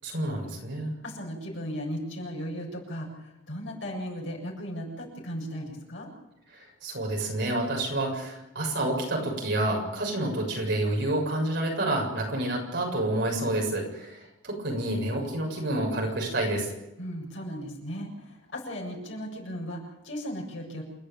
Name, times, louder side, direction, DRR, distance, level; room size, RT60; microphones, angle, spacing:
voice 1, 0.0-0.9 6.5-16.7, right 1 dB, 55° right, 0 dB, 7.1 m, -29 dB
voice 2, 1.0-6.1 17.0-20.8, equal, 70° left, -1 dB, 7.5 m, -36 dB
28.5 x 11.0 x 9.1 m, 0.93 s
head